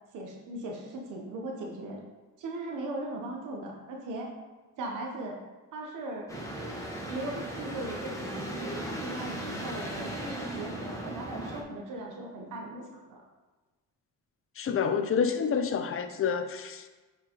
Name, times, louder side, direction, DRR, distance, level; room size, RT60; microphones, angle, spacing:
voice 1, 0.1-2.0 2.4-4.3 4.8-5.4 5.7-6.3 7.1-13.2, right 2 dB, 85° right, 0 dB, 1.1 m, -38 dB
sound 1, 6.3-11.6, right 1 dB, 10° left, 1.4 m, -37 dB
voice 2, 14.6-16.9, left 6 dB, 45° left, 8 dB, 0.7 m, -28 dB
8.5 x 4.9 x 3.1 m, 1.2 s
cardioid pair, 90°, 30 cm